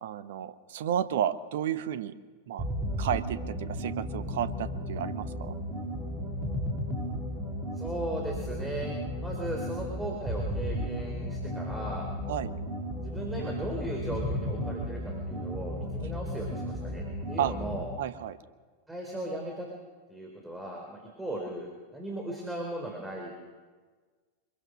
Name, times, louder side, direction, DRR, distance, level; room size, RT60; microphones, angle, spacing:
voice 1, 0.0-2.1 2.5-2.6 3.0-5.6 12.3-12.5 17.4-17.5 18.0-18.4, right 10 dB, 55° right, 12 dB, 1.1 m, -32 dB
sound 1, 2.6-17.9, equal, 25° right, 3.8 m, -34 dB
voice 2, 7.7-8.9 9.2-12.1 13.0-17.9 18.9-19.7 20.1-23.3, right 1 dB, 5° right, 0 dB, 4.0 m, -37 dB
25.0 x 22.0 x 6.4 m, 1.5 s
figure-of-eight pair, 90°, 0 cm